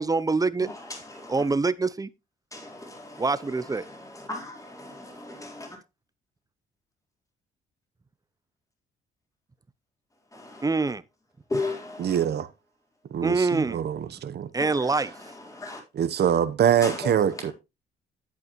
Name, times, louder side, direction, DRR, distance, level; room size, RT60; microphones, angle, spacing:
voice 1, 0.0-0.7 1.3-2.1 3.2-3.8 10.6-11.0 13.2-13.8 14.5-15.1, right 3 dB, 20° right, 0.7 m, -25 dB
voice 2, 0.6-1.5 2.5-5.8 10.2-10.9 11.5-12.2 14.6-15.8 16.8-17.5, left 2 dB, 15° left, 4.0 m, -37 dB
voice 3, 12.0-12.5 13.1-14.5 16.0-17.5, right 9 dB, 55° right, 1.0 m, -24 dB
10.5 x 8.4 x 3.1 m
cardioid pair, 90°, 20 cm